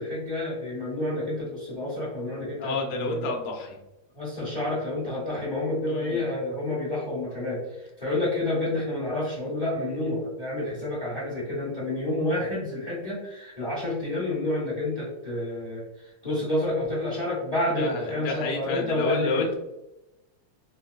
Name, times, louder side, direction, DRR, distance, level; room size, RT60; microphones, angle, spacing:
voice 1, 0.0-3.3 4.1-7.6 8.0-15.8 16.2-19.4, left 1 dB, 50° left, -8 dB, 0.4 m, -29 dB
voice 2, 2.6-3.8 5.9-6.2 17.7-19.5, left 3 dB, 80° left, 1 dB, 0.8 m, -30 dB
4.0 x 2.3 x 2.2 m, 0.93 s
omnidirectional pair, 2.3 m